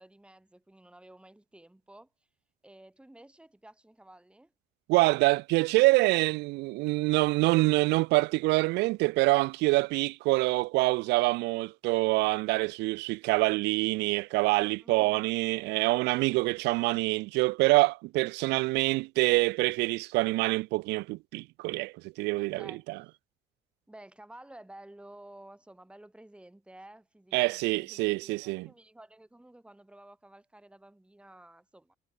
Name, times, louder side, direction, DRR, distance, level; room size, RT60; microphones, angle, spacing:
voice 1, 0.0-2.1 2.6-4.5 14.8-15.3 22.3-22.8 23.9-32.0, right 1 dB, 5° right, 4.4 m, -53 dB
voice 2, 4.9-23.0 27.3-28.7, right 22 dB, 85° right, 0.4 m, -26 dB
cardioid pair, 110°, 17 cm